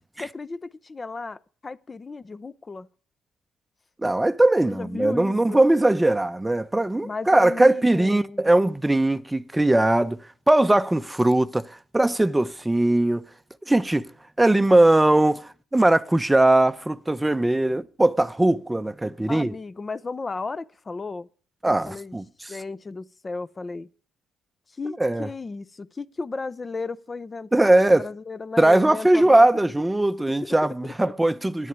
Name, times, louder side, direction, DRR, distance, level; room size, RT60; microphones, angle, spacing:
voice 1, 0.2-2.9 4.7-5.6 7.0-8.5 19.3-21.3 21.7-22.2 22.5-23.9 24.8-29.5 30.4-30.5 30.8-31.1, left 4 dB, 30° left, 0.7 m, -34 dB
voice 2, 4.0-10.2 10.5-13.2 13.7-14.1 14.4-19.5 21.6-22.5 25.0-25.3 27.5-28.1 28.6-31.7, right 1 dB, 10° right, 0.7 m, -20 dB
11.0 x 10.5 x 9.5 m
cardioid pair, 90°, 0 cm